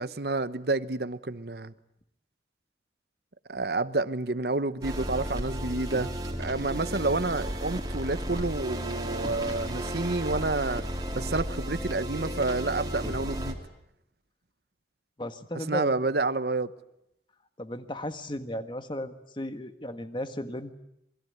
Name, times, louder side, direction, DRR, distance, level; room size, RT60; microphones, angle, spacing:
voice 1, 0.0-1.7 3.5-6.1 6.4-10.8 11.1-13.6 15.5-16.7, right 3 dB, 60° right, 1.0 m, -29 dB
sound 1, 4.8-13.5, equal, 20° right, 2.9 m, -33 dB
voice 2, 15.2-16.0 17.6-20.7, left 1 dB, 25° left, 1.6 m, -35 dB
27.0 x 21.5 x 9.5 m
head